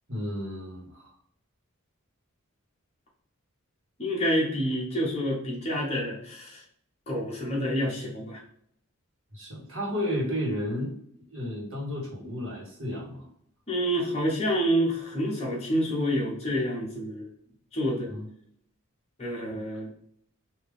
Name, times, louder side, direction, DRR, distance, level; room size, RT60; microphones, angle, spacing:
voice 1, 0.1-1.1 9.3-13.3 18.0-18.3 19.5-19.6, equal, 60° right, -2 dB, 1.5 m, -33 dB
voice 2, 4.0-6.6 7.1-8.4 13.7-17.3 17.7-18.1 19.2-19.9, equal, 30° left, -4 dB, 1.2 m, -28 dB
3.3 x 2.7 x 3.5 m, 0.66 s
head